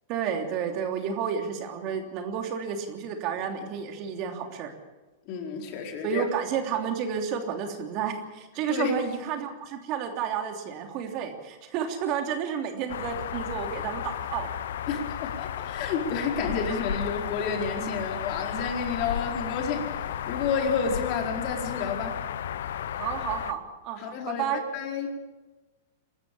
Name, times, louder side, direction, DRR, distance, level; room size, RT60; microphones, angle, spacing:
voice 1, 0.1-4.7 6.0-14.5 23.0-24.6, right 7 dB, 45° right, 4 dB, 3.1 m, -31 dB
voice 2, 5.3-6.2 8.7-8.9 14.9-22.2 24.0-24.5 24.7-25.1, left 5 dB, 45° left, 2 dB, 4.5 m, -30 dB
sound 1, 12.9-23.5, left 10 dB, 70° left, 1.0 m, -33 dB
23.5 x 13.5 x 8.6 m, 1.2 s
hypercardioid pair, 115°, 0 cm